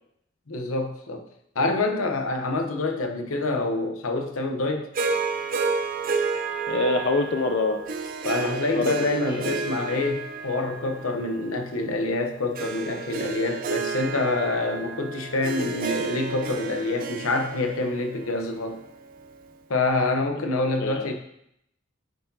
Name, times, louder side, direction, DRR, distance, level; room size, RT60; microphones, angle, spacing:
voice 1, 0.5-1.2 1.5-4.9 8.2-18.8 19.7-21.1, left 2 dB, 85° left, 4 dB, 0.8 m, -26 dB
Harp, 4.9-19.3, right 5 dB, 45° right, 0.4 m, -31 dB
voice 2, 6.7-7.8 8.7-9.6 20.8-21.1, left 3 dB, 55° left, 4 dB, 0.4 m, -25 dB
9.2 x 4.4 x 2.7 m, 0.76 s
head